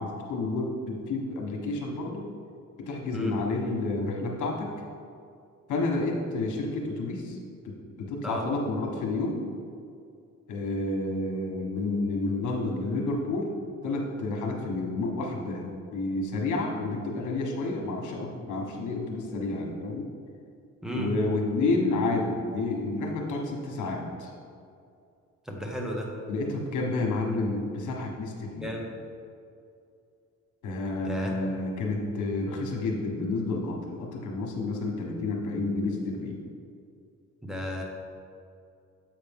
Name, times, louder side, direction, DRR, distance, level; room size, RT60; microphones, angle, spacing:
voice 1, 0.0-2.3 2.8-4.7 5.7-7.4 8.0-9.4 10.5-13.5 13.8-15.6 15.9-20.1 20.9-24.3 26.3-28.8 30.6-36.4, left 2 dB, 80° left, 1 dB, 1.3 m, -30 dB
voice 2, 25.5-26.1 28.6-28.8 31.0-31.3 37.4-37.8, equal, ahead, -1 dB, 1.3 m, -33 dB
7.8 x 5.7 x 3.6 m, 2.4 s
cardioid pair, 90°, 30 cm